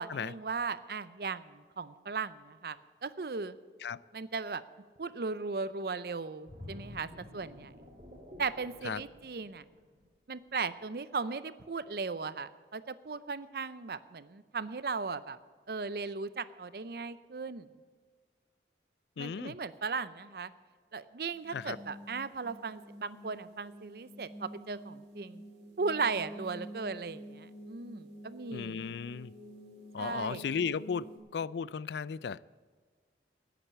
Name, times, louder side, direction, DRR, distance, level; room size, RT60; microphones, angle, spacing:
voice 1, 0.0-3.6 4.1-4.6 5.0-7.1 7.3-7.7 8.4-9.6 10.3-15.4 15.7-17.7 19.2-20.5 20.9-25.4 25.8-28.9 30.0-30.4, right 4 dB, 60° right, 15 dB, 0.6 m, -37 dB
sound 1, 6.5-10.0 10.5-10.7, left 1 dB, 40° right, 2.8 m, -50 dB
voice 2, 19.2-19.6 21.5-21.8 28.5-29.3 29.9-32.4, left 6 dB, 75° left, 20 dB, 0.4 m, -35 dB
sound 2, 21.3-31.2, equal, 90° right, 3.0 m, -49 dB
10.0 x 10.0 x 8.5 m, 1.5 s
head